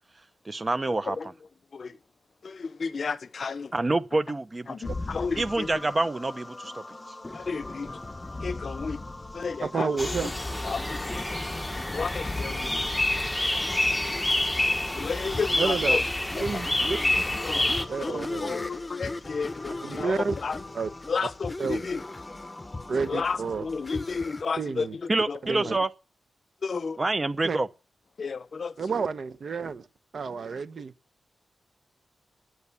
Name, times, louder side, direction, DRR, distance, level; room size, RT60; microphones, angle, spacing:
voice 1, 0.5-1.2 3.7-4.9 5.4-6.8 25.1-25.9 27.0-27.7, right 2 dB, 30° right, 0.9 m, -27 dB
voice 2, 2.4-3.7 4.7-5.8 7.3-7.9 8.4-9.0 9.3-10.3 10.6-11.2 11.9-12.8 15.0-16.0 16.4-16.6 17.4-20.6 21.1-22.0 23.1-25.7 26.6-27.0 28.2-28.7, left 5 dB, 55° left, 0.7 m, -32 dB
sound 1, 4.8-24.4, left 2 dB, 25° left, 1.0 m, -38 dB
voice 3, 9.6-10.3 15.6-16.0 16.4-17.2 17.6-18.6 19.9-20.4 20.7-20.9 21.6-21.9 22.9-23.6 24.6-25.0 25.4-25.8 27.4-27.6 28.8-29.9 30.1-30.9, right 5 dB, 65° right, 1.0 m, -30 dB
sound 2, 10.0-17.8, left 1 dB, 10° left, 1.3 m, -28 dB
10.5 x 9.5 x 7.0 m
cardioid pair, 75°, 0 cm